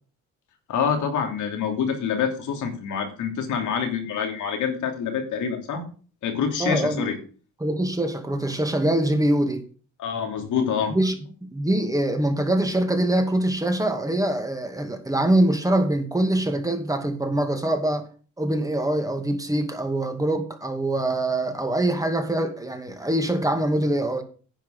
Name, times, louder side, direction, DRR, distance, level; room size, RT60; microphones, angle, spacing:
voice 1, 0.7-5.8 6.2-7.2 10.0-10.9, left 7 dB, 80° left, 3.0 m, -26 dB
voice 2, 6.6-7.1 7.6-9.6 10.9-11.1 11.4-18.1 18.4-24.2, right 1 dB, 10° right, 2.3 m, -24 dB
10.5 x 4.8 x 8.0 m
cardioid pair, 90°, 30 cm